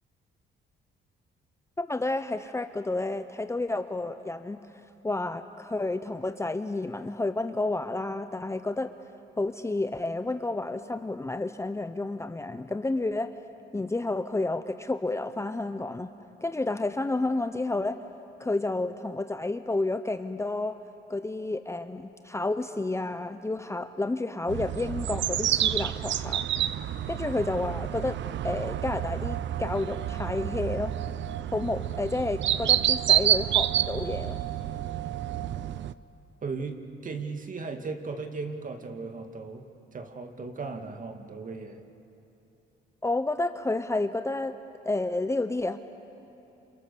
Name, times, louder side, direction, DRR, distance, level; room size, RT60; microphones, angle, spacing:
voice 1, 1.8-4.6 5.0-8.9 9.4-13.3 13.7-16.1 16.4-18.0 18.4-20.8 21.1-26.4 27.1-28.2 28.4-30.9 31.5-34.4 43.0-44.5 44.8-45.8, left 2 dB, 15° left, 9 dB, 0.8 m, -30 dB
sound 1, 24.5-35.9, right 11 dB, 70° right, 0.7 m, -28 dB
voice 2, 36.4-41.8, right 4 dB, 40° right, 5 dB, 2.1 m, -37 dB
28.5 x 27.0 x 6.9 m, 2.9 s
cardioid pair, 90°, 20 cm